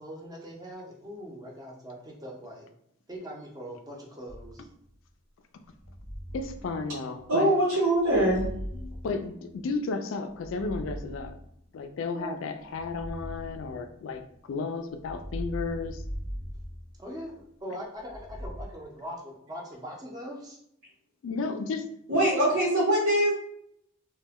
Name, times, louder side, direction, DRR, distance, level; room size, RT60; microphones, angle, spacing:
voice 1, 0.0-2.7 3.1-4.7 12.1-12.4 17.0-20.6, equal, 20° right, -1 dB, 0.5 m, -41 dB
sound 1, 4.3-5.0 5.8-7.4 8.0-9.8 10.3-11.9 12.7-14.4 14.9-17.5 18.1-18.6, equal, 20° left, 0.7 m, -40 dB
voice 2, 6.3-7.5 9.0-11.4 11.7-16.0 21.2-21.9, left 4 dB, 65° left, 8 dB, 0.3 m, -33 dB
voice 3, 7.3-8.4 8.7-8.9 22.1-23.3, right 1 dB, 75° right, -7 dB, 0.8 m, -23 dB
2.1 x 2.1 x 3.4 m, 0.71 s
head